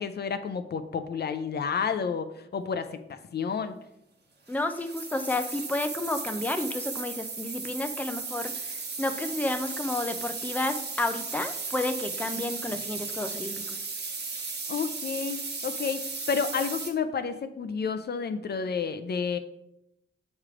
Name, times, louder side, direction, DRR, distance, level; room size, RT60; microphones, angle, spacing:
voice 1, 0.0-3.7 14.7-15.4 15.6-19.4, left 6 dB, 55° left, 9 dB, 0.5 m, -30 dB
voice 2, 4.5-8.7 9.0-13.8, left 2 dB, 10° left, 6 dB, 0.5 m, -31 dB
sound 1, 4.5-16.9, right 4 dB, 55° right, 1.2 m, -36 dB
7.2 x 3.3 x 4.9 m, 0.82 s
cardioid pair, 80°, 21 cm